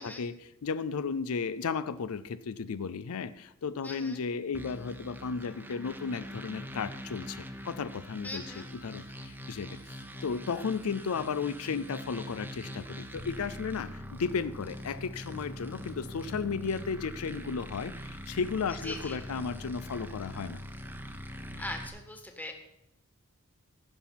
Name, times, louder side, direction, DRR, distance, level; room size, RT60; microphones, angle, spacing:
voice 1, 0.0-20.6, left 5 dB, 75° left, 14 dB, 0.5 m, -34 dB
voice 2, 3.8-4.2 8.2-8.7 18.7-19.2 21.6-22.5, left 1 dB, 10° left, 4 dB, 1.5 m, -40 dB
sound 1, 4.5-21.9, equal, 10° right, 0.9 m, -43 dB
16.0 x 6.1 x 5.8 m, 0.84 s
head